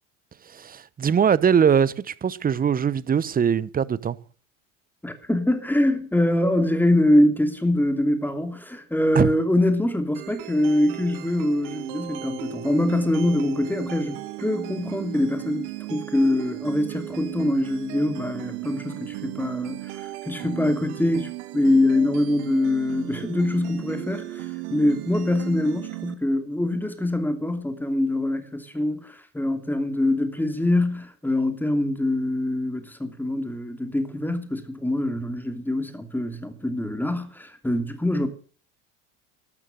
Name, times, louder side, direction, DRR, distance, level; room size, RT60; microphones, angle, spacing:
voice 1, 0.5-4.2 9.1-9.3, right 7 dB, 25° right, 1.0 m, -21 dB
voice 2, 5.0-38.3, left 1 dB, 5° left, 2.9 m, -24 dB
sound 1, 10.1-26.1, right 15 dB, 65° right, 2.0 m, -36 dB
13.5 x 12.5 x 6.6 m
hypercardioid pair, 80°, 38 cm